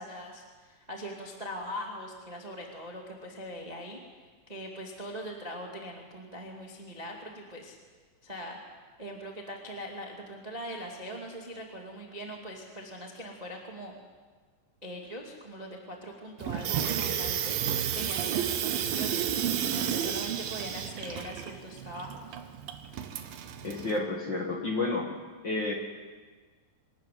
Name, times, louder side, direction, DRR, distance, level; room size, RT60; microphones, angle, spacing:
voice 1, 0.0-4.0 4.5-7.8 8.2-8.6 9.0-13.9 14.8-19.4 19.7-22.4, equal, 15° right, 0 dB, 1.5 m, -41 dB
Water tap faucet / Sink (filling or washing), 16.4-24.0, right 9 dB, 70° right, 2.6 m, -32 dB
voice 2, 23.6-25.1 25.4-25.7, left 3 dB, 45° left, 0 dB, 1.5 m, -30 dB
24.0 x 13.5 x 9.5 m, 1.4 s
omnidirectional pair, 4.8 m